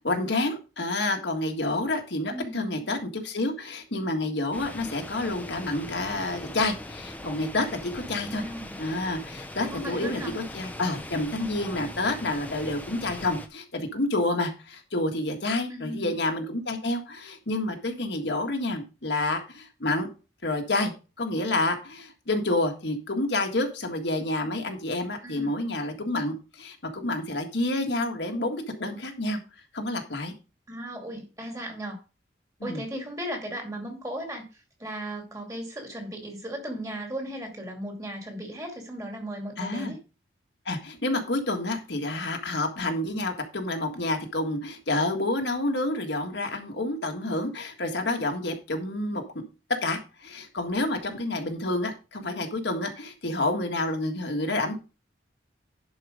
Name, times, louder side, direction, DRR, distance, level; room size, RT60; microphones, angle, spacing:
voice 1, 0.0-8.4 8.8-20.1 20.4-20.9 21.2-29.4 29.7-30.3 32.6-32.8 39.6-39.9 40.6-49.2 49.8-54.8, left 2 dB, 65° left, 3 dB, 1.7 m, -29 dB
voice 2, 2.3-2.8 8.2-8.8 9.7-10.3 15.7-16.1 25.2-25.6 30.7-32.0 32.6-40.0, right 1 dB, 15° right, 2 dB, 2.4 m, -36 dB
sound 1, 4.5-13.5, left 1 dB, 10° left, 0.8 m, -40 dB
11.0 x 4.9 x 5.0 m, 0.31 s
head